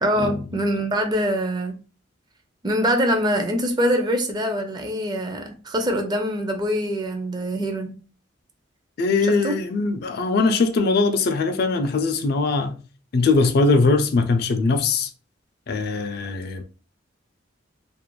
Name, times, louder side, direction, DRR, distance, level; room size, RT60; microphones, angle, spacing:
voice 1, 0.0-1.8 2.6-7.9 9.3-9.5, equal, 20° right, 0.4 m, -24 dB
voice 2, 9.0-12.8 13.1-15.1 15.7-16.6, left 3 dB, 55° left, 0.4 m, -21 dB
2.4 x 2.1 x 2.9 m
head